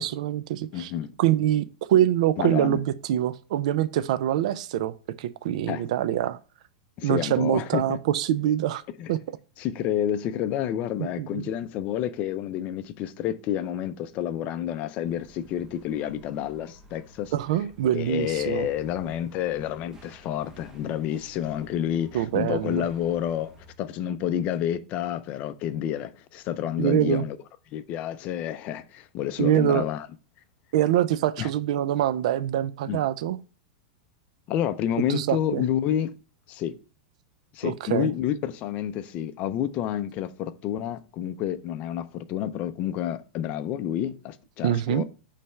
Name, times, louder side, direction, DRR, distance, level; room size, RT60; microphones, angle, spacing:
voice 1, 0.0-0.9 1.2-6.4 7.0-8.8 9.1-9.2 11.0-11.4 17.3-18.7 22.1-22.9 26.8-27.2 29.4-29.8 30.7-33.4 35.1-35.6 37.6-38.1 44.6-45.0, right 11 dB, 65° right, 0.4 m, -24 dB
voice 2, 0.7-1.1 2.4-2.8 5.7-5.8 7.0-8.0 9.0-9.1 9.6-17.3 17.9-23.5 23.8-27.4 27.7-30.1 31.4-31.5 32.9-33.0 34.5-36.1 36.5-36.8 37.5-45.0, left 10 dB, 35° left, 0.5 m, -29 dB
sound 1, 15.0-23.7, equal, 15° right, 0.9 m, -52 dB
5.4 x 3.3 x 5.5 m
supercardioid pair, 145°, 4 cm